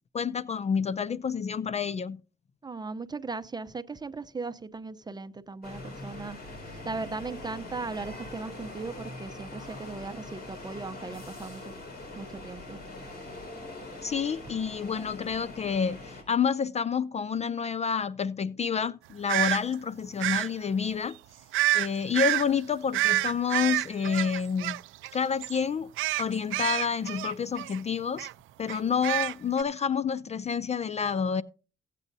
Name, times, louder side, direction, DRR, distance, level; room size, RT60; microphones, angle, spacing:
voice 1, 0.1-2.2 14.0-21.2 21.7-24.8 25.1-25.9 26.2-28.3 28.6-31.4, left 6 dB, 35° left, 0.4 m, -29 dB
voice 2, 2.6-6.4 6.6-11.7 12.1-12.8, right 4 dB, 20° right, 0.7 m, -38 dB
sound 1, 5.6-16.2, left 2 dB, 50° left, 4.9 m, -42 dB
sound 2, 19.3-19.6 20.2-20.5 21.5-21.9 22.1-22.5 22.9-25.1 25.4-25.6 26.0-27.8 28.2-28.3 28.7-29.6, right 17 dB, 85° right, 0.4 m, -28 dB
16.5 x 8.3 x 2.7 m
cardioid pair, 90°, 20 cm